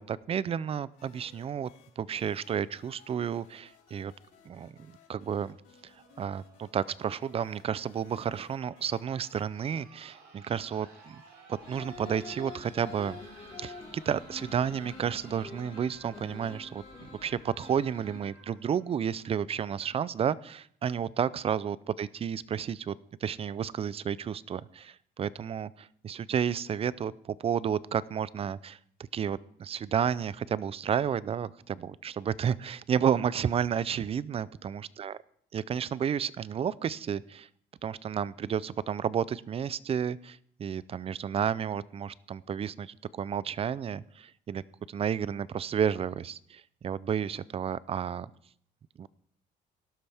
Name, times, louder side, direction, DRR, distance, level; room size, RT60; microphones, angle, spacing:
voice 1, 0.0-1.7 2.0-4.1 4.5-5.5 6.2-11.2 11.7-13.2 13.6-23.0 23.2-28.8 29.1-35.1 35.5-37.5 37.8-44.6 44.9-48.3 49.0-49.1, right 8 dB, 35° right, 19 dB, 0.5 m, -31 dB
sound 1, 0.9-10.6, left 6 dB, 85° left, 4.8 m, -61 dB
sound 2, 5.7-19.7 20.9-21.0, right 4 dB, 90° right, 5.0 m, -56 dB
sound 3, 11.6-18.3, left 3 dB, 35° left, 3.1 m, -46 dB
18.0 x 12.0 x 3.5 m, 0.65 s
cardioid pair, 110°, 17 cm